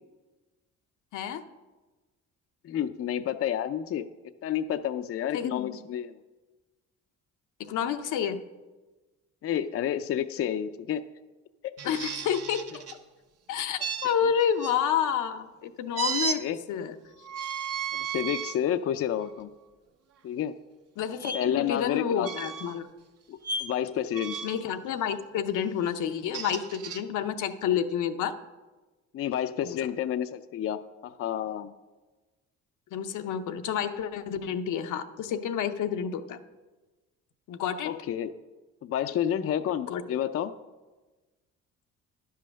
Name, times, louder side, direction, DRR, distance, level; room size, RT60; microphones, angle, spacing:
voice 1, 2.6-4.1 4.4-6.2 9.4-11.0 11.6-12.0 16.4-16.6 17.9-19.5 20.2-20.5 21.3-22.5 23.3-24.4 29.1-31.7 37.8-38.3 38.8-40.5, left 10 dB, 50° left, 10 dB, 0.4 m, -30 dB
voice 2, 5.3-5.8 7.6-8.4 11.8-12.8 13.5-16.9 21.0-22.9 24.4-28.4 29.6-29.9 32.9-36.4 37.5-37.9 39.9-40.2, left 8 dB, 80° left, 8 dB, 0.7 m, -29 dB
sound 1, 11.8-13.0 13.8-14.8 15.9-16.4 17.2-18.6 19.2-19.4 21.2-21.4 22.2-22.8 23.4-23.7 24.1-24.6 26.1-27.0, right 6 dB, 55° right, 0.8 m, -34 dB
10.5 x 5.6 x 6.3 m, 1.2 s
cardioid pair, 90°, 30 cm